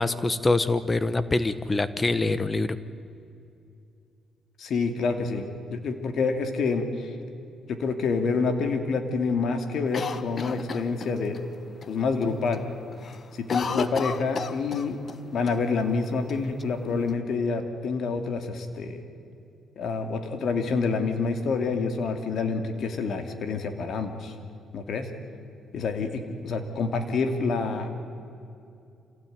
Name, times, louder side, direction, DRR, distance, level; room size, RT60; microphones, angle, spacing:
voice 1, 0.0-2.8, left 2 dB, 25° left, 14 dB, 1.1 m, -24 dB
voice 2, 4.6-7.1 7.7-11.5 11.9-12.6 13.3-15.0 15.3-19.0 19.8-24.3 24.7-25.1 25.7-27.9, left 4 dB, 65° left, 7 dB, 2.7 m, -27 dB
Cough, 9.9-11.4 11.8-11.9 12.2-12.6 12.9-15.2 15.5-15.6 16.3-17.1, left 5 dB, 45° left, 1.3 m, -33 dB
26.5 x 17.0 x 9.4 m, 2.6 s
cardioid pair, 90°, 0 cm